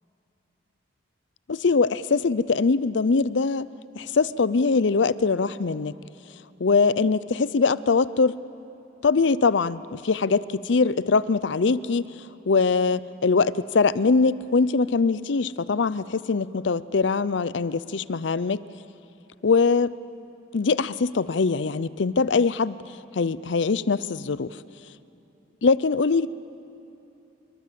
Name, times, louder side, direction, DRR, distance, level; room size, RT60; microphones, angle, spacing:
voice 1, 1.5-5.9 6.6-8.4 9.0-12.0 12.5-18.6 19.4-19.9 20.5-22.8 23.1-24.6 25.6-26.3, left 4 dB, 70° left, 17 dB, 0.6 m, -22 dB
26.0 x 22.5 x 7.6 m, 3.0 s
head